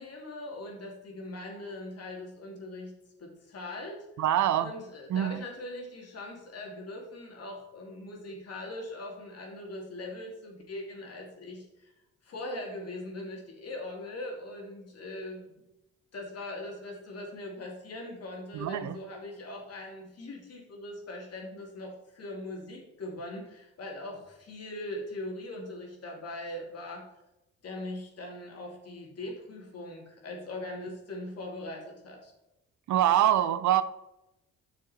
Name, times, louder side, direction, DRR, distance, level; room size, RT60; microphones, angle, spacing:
voice 1, 0.0-2.9 3.2-4.2 4.6-11.9 12.2-15.6 16.1-27.1 27.6-32.3, left 1 dB, 55° left, 0 dB, 2.8 m, -41 dB
voice 2, 4.2-4.7 5.1-5.4 18.5-19.0 32.9-33.8, right 11 dB, 70° right, 13 dB, 0.7 m, -25 dB
9.8 x 6.3 x 4.3 m, 0.91 s
cardioid pair, 90°, 30 cm